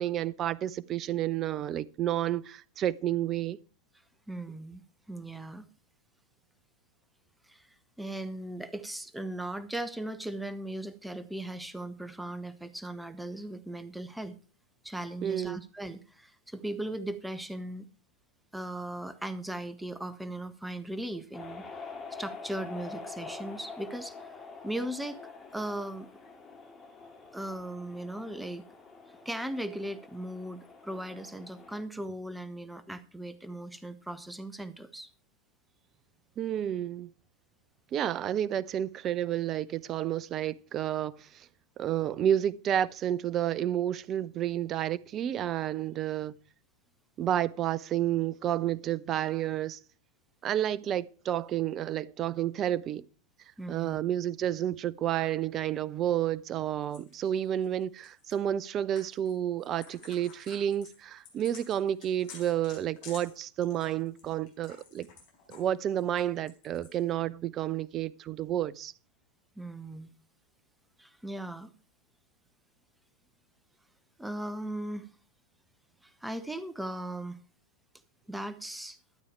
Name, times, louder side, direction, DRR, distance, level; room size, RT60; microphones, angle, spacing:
voice 1, 0.0-3.6 15.2-15.6 36.4-37.1 37.9-41.5 41.8-46.3 47.2-49.8 50.4-53.0 53.7-65.1 65.5-68.9, right 11 dB, 30° right, 0.5 m, -30 dB
voice 2, 4.3-4.8 5.1-5.7 7.5-7.7 8.0-14.4 14.8-17.9 18.5-21.6 22.1-26.1 27.3-28.6 29.2-35.1 53.6-54.0 69.6-70.1 71.0-71.7 74.2-75.1 76.0-77.4 78.3-79.0, right 1 dB, 5° right, 0.9 m, -38 dB
sound 1, 21.3-31.8, left 4 dB, 15° left, 2.2 m, -46 dB
sound 2, 56.9-58.3 58.9-59.3 59.6-65.6 66.0-67.0, left 5 dB, 45° left, 4.7 m, -51 dB
12.5 x 8.7 x 4.6 m
figure-of-eight pair, 90°, 0 cm